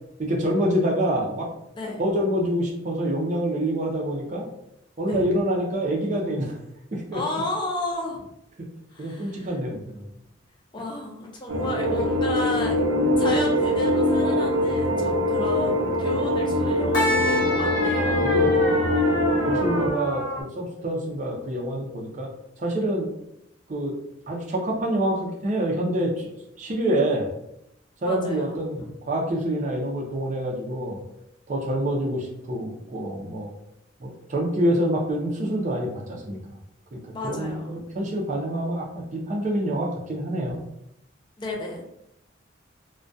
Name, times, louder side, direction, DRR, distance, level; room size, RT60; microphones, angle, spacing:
voice 1, 0.2-1.5 2.0-4.5 5.0-6.6 6.9-7.2 9.0-10.1 13.2-13.3 18.2-18.5 19.5-22.3 22.6-23.1 23.7-23.9 24.3-27.3 28.0-28.8 29.1-31.0 31.5-33.5 34.0-36.4 36.9-40.6, right 1 dB, 40° right, -1 dB, 0.5 m, -26 dB
voice 2, 7.1-8.2 8.9-9.5 10.7-12.7 13.2-18.3 28.1-28.8 37.1-37.8 41.4-41.9, left 2 dB, 25° left, -1 dB, 0.5 m, -32 dB
sound 1, 11.5-19.9, left 1 dB, 90° right, 0.5 m, -23 dB
sound 2, 12.2-20.4, left 1 dB, 70° left, 0.6 m, -32 dB
2.2 x 2.2 x 2.6 m, 0.80 s
head